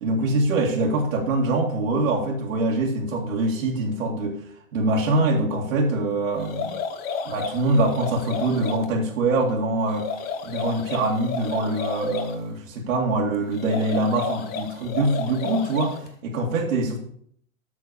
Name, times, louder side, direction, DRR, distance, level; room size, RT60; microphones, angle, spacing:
voice 1, 0.0-4.4 4.7-6.8 7.3-10.1 10.4-17.0, right 2 dB, 70° right, -2 dB, 2.3 m, -24 dB
sound 1, 6.4-8.8 9.9-12.3 13.5-16.1, left 5 dB, 20° left, 0.8 m, -32 dB
8.2 x 6.0 x 6.9 m, 0.64 s
hypercardioid pair, 140°, 41 cm